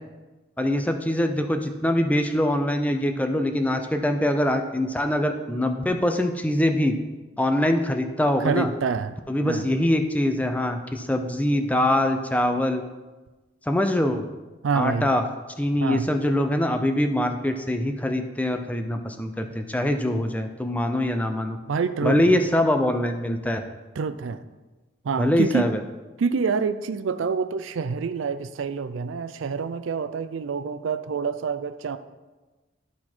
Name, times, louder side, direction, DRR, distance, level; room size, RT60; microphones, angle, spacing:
voice 1, 0.6-6.9 7.4-8.7 9.3-12.8 13.7-14.2 14.7-15.2 15.6-21.6 22.0-23.6 25.2-25.8, left 1 dB, 5° left, 6 dB, 0.4 m, -23 dB
voice 2, 8.4-9.2 9.4-9.6 14.6-15.1 15.8-16.1 21.7-22.4 24.0-24.4 25.0-25.7 26.2-32.0, right 5 dB, 75° right, 12 dB, 0.4 m, -27 dB
11.5 x 4.2 x 4.4 m, 1.2 s
head